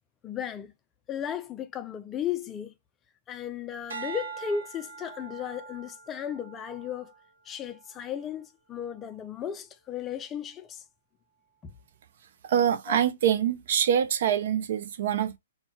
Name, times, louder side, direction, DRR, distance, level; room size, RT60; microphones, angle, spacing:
voice 1, 0.2-0.7 1.1-2.7 3.3-7.1 7.5-10.8 11.6-11.7 12.9-13.0, left 8 dB, 20° left, 0.3 m, -35 dB
sound 1, 3.9-8.3 8.9-9.3, right 6 dB, 75° right, 0.8 m, -43 dB
voice 2, 12.5-15.4, right 9 dB, 55° right, 0.4 m, -25 dB
2.1 x 2.1 x 2.8 m
figure-of-eight pair, 120°, 0 cm